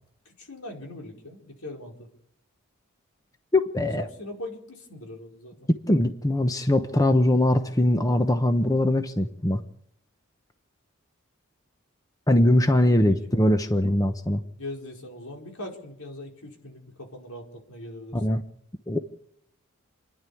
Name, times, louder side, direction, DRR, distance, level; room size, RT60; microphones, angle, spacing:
voice 1, 0.2-2.1 3.8-5.7 12.8-13.3 14.6-18.2, left 1 dB, 85° left, 1 dB, 4.8 m, -41 dB
voice 2, 3.5-4.1 5.9-9.6 12.3-14.4 18.1-18.4 18.9-19.0, left 1 dB, 15° left, 7 dB, 0.9 m, -21 dB
29.0 x 11.0 x 8.5 m, 0.73 s
head